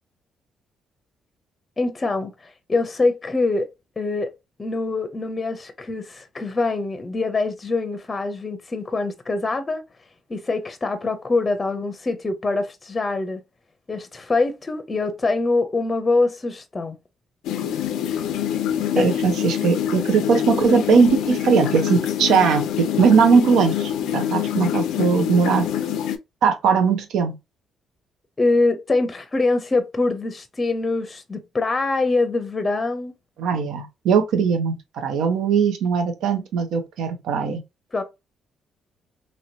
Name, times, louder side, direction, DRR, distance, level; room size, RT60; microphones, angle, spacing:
voice 1, 1.8-3.7 4.0-4.3 4.6-9.8 10.3-13.4 13.9-17.0 18.9-19.1 28.4-33.1 37.9-38.0, left 3 dB, 25° left, 0.6 m, -24 dB
sound 1, 17.4-26.2, left 10 dB, 85° left, 0.4 m, -25 dB
voice 2, 18.9-25.7 26.4-27.4 33.4-37.6, right 6 dB, 80° right, 0.8 m, -20 dB
3.1 x 2.9 x 2.7 m
cardioid pair, 90°, 0 cm